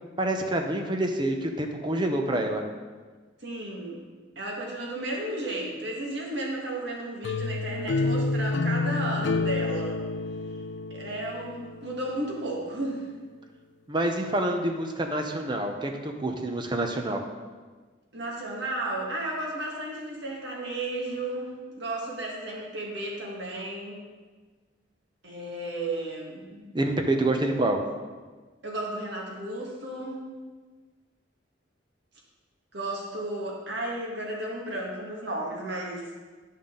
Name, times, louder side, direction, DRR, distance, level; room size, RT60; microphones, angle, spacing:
voice 1, 0.2-2.6 13.9-17.2 26.5-27.8, right 1 dB, 25° right, 4 dB, 0.7 m, -27 dB
voice 2, 3.4-4.0 4.4-10.0 10.9-13.1 18.1-24.0 25.2-26.4 28.6-30.2 32.7-36.1, right 1 dB, 65° right, -2 dB, 1.8 m, -33 dB
sound 1, 7.2-12.1, left 3 dB, 75° left, 0.4 m, -29 dB
11.0 x 5.6 x 3.8 m, 1.4 s
head